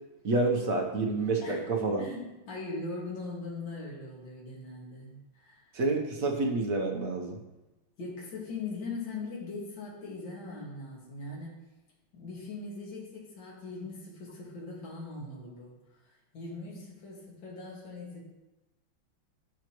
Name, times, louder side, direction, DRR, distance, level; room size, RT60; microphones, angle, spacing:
voice 1, 0.2-2.0 5.7-7.4, right 3 dB, 55° right, 2 dB, 1.1 m, -28 dB
voice 2, 2.0-5.7 8.0-11.6 12.1-15.7 16.0-18.2, left 3 dB, 65° left, -4 dB, 2.5 m, -40 dB
11.0 x 6.5 x 3.0 m, 1.1 s
omnidirectional pair, 2.2 m